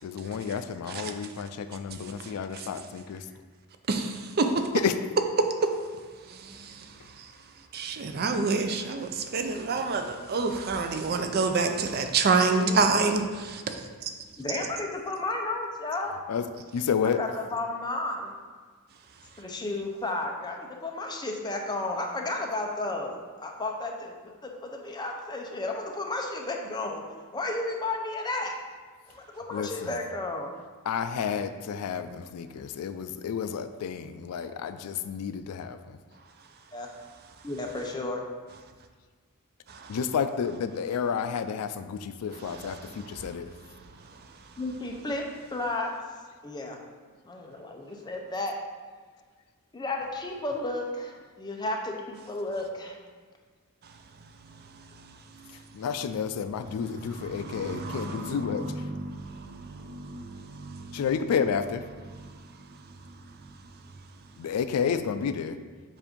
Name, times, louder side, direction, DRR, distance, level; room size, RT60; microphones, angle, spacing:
voice 1, 0.0-3.2 4.7-5.0 16.3-17.2 29.5-30.0 30.9-36.0 39.9-43.5 55.7-58.6 60.9-61.8 64.4-65.6, left 7 dB, 80° left, 10 dB, 0.3 m, -30 dB
voice 2, 2.2-2.7 3.9-4.7 5.4-5.7 6.3-7.3 7.7-13.8 14.0-14.1 39.7-40.0 42.3-43.3 57.0-61.1 62.1-62.4, right 4 dB, 45° right, 6 dB, 0.5 m, -29 dB
voice 3, 14.4-16.1 17.2-18.3 19.4-27.0 27.3-28.5 29.1-30.5 36.7-36.9 37.4-38.2 44.6-45.2 45.5-45.9 46.4-46.8 47.2-48.5 49.7-53.0, left 2 dB, 20° left, 1 dB, 0.6 m, -33 dB
7.2 x 2.6 x 5.1 m, 1.5 s
head